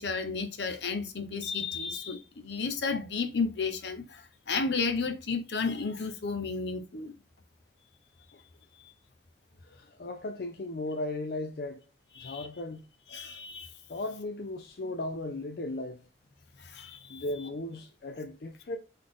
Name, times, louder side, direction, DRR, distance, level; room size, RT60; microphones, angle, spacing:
voice 1, 0.0-7.1 8.8-8.9 12.2-12.5 13.1-13.7 16.6-17.2, left 4 dB, 75° left, 0.8 m, -33 dB
voice 2, 9.6-11.9 12.2-12.8 13.9-16.0 17.1-18.8, left 2 dB, 55° left, 0.4 m, -36 dB
3.9 x 3.7 x 3.6 m
head